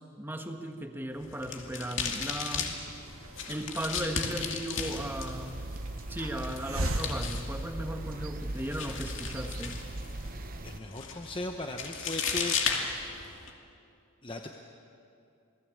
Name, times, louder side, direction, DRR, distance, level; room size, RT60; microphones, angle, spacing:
voice 1, 0.0-2.7 3.5-5.6 6.1-9.8, right 1 dB, 10° right, 5 dB, 1.4 m, -36 dB
sound 1, 1.2-13.5, left 5 dB, 60° left, 2.5 m, -36 dB
Hiss, 2.9-8.3, right 1 dB, 75° right, 2.2 m, -39 dB
sound 2, 4.8-10.8, right 1 dB, 40° right, 0.9 m, -39 dB
voice 2, 10.6-12.6 14.2-14.5, left 2 dB, 25° left, 3 dB, 1.0 m, -37 dB
28.0 x 18.5 x 8.6 m, 2.7 s
head